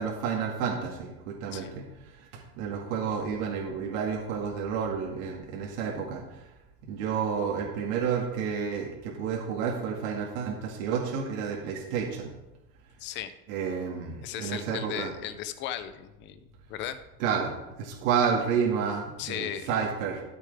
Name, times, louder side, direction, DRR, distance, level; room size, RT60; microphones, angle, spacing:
voice 1, 0.0-6.2 6.8-12.3 13.5-15.1 17.2-17.5 17.8-20.2, right 6 dB, 65° right, -1 dB, 2.0 m, -30 dB
voice 2, 13.0-13.3 14.2-16.4 16.7-17.0 19.2-19.7, left 11 dB, 30° left, 12 dB, 0.4 m, -36 dB
13.0 x 6.7 x 3.4 m, 0.98 s
supercardioid pair, 165°, 42 cm